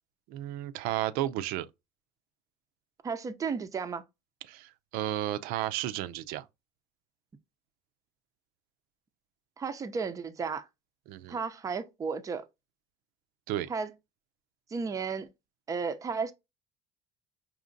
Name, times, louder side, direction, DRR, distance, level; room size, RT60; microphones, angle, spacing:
voice 1, 0.3-1.7 4.5-6.5 11.1-11.4 13.5-13.7, right 13 dB, 75° right, 0.4 m, -33 dB
voice 2, 3.0-4.0 9.6-10.7 11.3-12.4 13.7-13.9 14.7-15.3 15.7-16.3, right 5 dB, 20° right, 0.5 m, -33 dB
5.1 x 2.9 x 2.5 m
cardioid pair, 130°, 15 cm